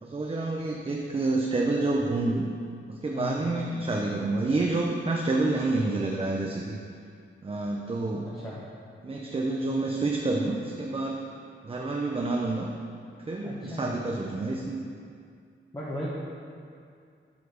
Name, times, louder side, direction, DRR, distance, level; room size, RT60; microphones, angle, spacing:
voice 1, 0.0-2.5 2.9-6.8 7.4-8.3 9.0-11.3 11.6-12.7 13.3-14.8, right 2 dB, 25° right, 0 dB, 0.5 m, -28 dB
voice 2, 3.1-3.5 8.2-8.6 13.4-14.0 15.7-16.1, left 1 dB, 20° left, -7 dB, 1.2 m, -37 dB
8.1 x 5.0 x 5.0 m, 2.3 s
wide cardioid pair, 115°, 21 cm